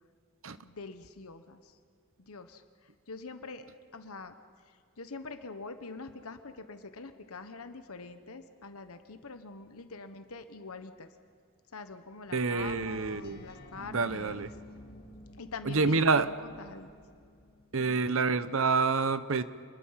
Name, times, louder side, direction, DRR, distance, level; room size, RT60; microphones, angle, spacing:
voice 1, 0.6-1.8 2.2-4.3 4.7-11.1 11.7-14.5 15.4-16.9 17.8-18.0, left 3 dB, 75° left, 8 dB, 1.2 m, -45 dB
voice 2, 12.3-13.4 13.9-14.5 15.7-16.3 17.7-19.4, right 4 dB, 60° right, 13 dB, 0.8 m, -27 dB
sound 1, 12.6-17.8, equal, 45° left, 2.1 m, -51 dB
28.0 x 21.0 x 5.8 m, 2.3 s
head